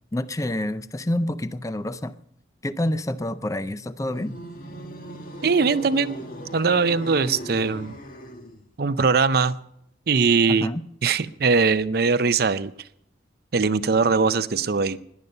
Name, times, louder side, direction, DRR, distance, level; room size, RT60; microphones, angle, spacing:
voice 1, 0.1-2.1 2.6-4.4 10.5-10.8, left 1 dB, 15° left, 13 dB, 0.4 m, -28 dB
sound 1, 4.0-8.7, equal, 45° left, 1.6 m, -38 dB
voice 2, 5.4-6.2 6.5-7.9 8.8-9.6 10.1-10.7 11.0-12.7 13.5-15.0, right 4 dB, 50° right, 14 dB, 0.5 m, -21 dB
17.5 x 11.0 x 5.4 m, 0.74 s
head